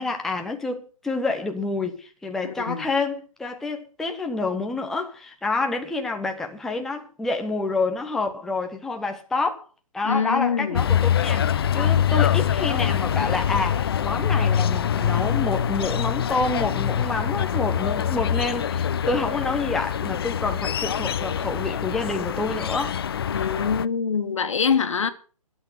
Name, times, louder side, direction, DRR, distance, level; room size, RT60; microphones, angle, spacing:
voice 1, 0.0-9.7 9.9-23.0, left 3 dB, ahead, 0.7 m, -28 dB
voice 2, 2.4-2.9 10.0-10.9 23.3-25.1, left 6 dB, 55° left, 1.7 m, -24 dB
sound 1, 10.7-23.9, left 9 dB, 40° left, 0.6 m, -24 dB
12.5 x 8.2 x 7.8 m
figure-of-eight pair, 140°, 19 cm